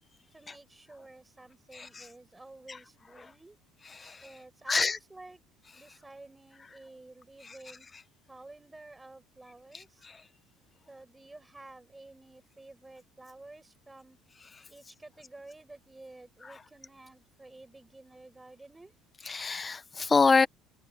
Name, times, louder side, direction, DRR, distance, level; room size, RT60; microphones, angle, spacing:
voice 1, 0.3-3.6 4.2-5.4 5.7-7.9 8.3-10.1 10.9-14.2 14.7-18.9, right 2 dB, 10° right, 7.9 m, -51 dB
voice 2, 1.7-2.1 4.0-4.2 4.7-5.0 9.7-10.1 19.3-20.5, left 4 dB, 20° left, 1.1 m, -26 dB
cardioid pair, 125°, 0 cm